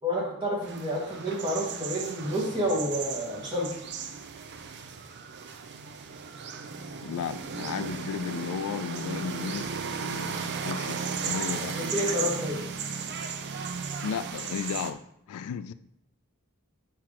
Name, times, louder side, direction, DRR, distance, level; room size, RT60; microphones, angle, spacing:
voice 1, 0.0-3.7 11.7-12.6, equal, 20° right, -4 dB, 2.0 m, -29 dB
sound 1, 0.6-14.9, right 5 dB, 50° right, 0.5 m, -35 dB
voice 2, 7.0-11.0 11.3-11.8 14.0-15.0 15.3-15.7, left 7 dB, 85° left, 14 dB, 0.3 m, -34 dB
5.8 x 4.7 x 4.7 m, 0.77 s
head